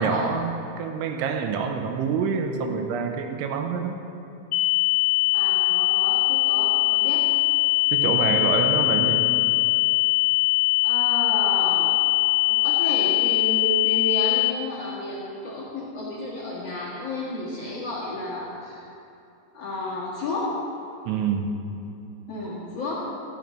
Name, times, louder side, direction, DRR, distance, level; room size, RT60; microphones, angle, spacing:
voice 1, 0.0-4.0 7.9-9.3 21.1-21.5, right 6 dB, 85° right, 5 dB, 3.1 m, -26 dB
sound 1, 4.5-14.5, left 22 dB, 85° left, 3.1 m, -21 dB
voice 2, 5.3-7.3 10.8-12.0 12.5-18.8 19.5-20.6 22.3-22.9, left 2 dB, 60° left, -7 dB, 1.7 m, -32 dB
14.5 x 7.3 x 6.3 m, 2.8 s
omnidirectional pair, 5.6 m